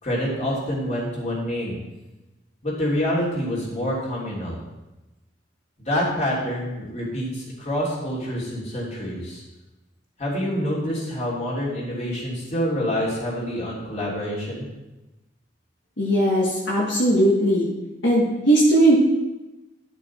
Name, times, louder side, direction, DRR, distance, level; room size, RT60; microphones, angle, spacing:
voice 1, 0.0-1.8 2.6-4.6 5.8-9.4 10.2-14.7, equal, 40° left, -5 dB, 3.0 m, -27 dB
voice 2, 16.0-17.7 18.0-19.0, right 1 dB, 65° left, -4 dB, 1.5 m, -18 dB
12.0 x 6.1 x 4.2 m, 1.0 s
head